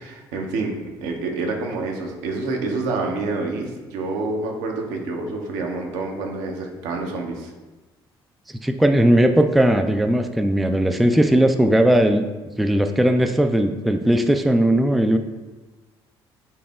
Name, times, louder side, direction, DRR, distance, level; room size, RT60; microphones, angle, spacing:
voice 1, 0.0-7.5, right 3 dB, 75° right, 2 dB, 0.7 m, -27 dB
voice 2, 8.6-12.2 12.6-15.2, right 1 dB, ahead, 7 dB, 0.3 m, -18 dB
5.5 x 2.0 x 3.4 m, 1.2 s
hypercardioid pair, 55°, 12 cm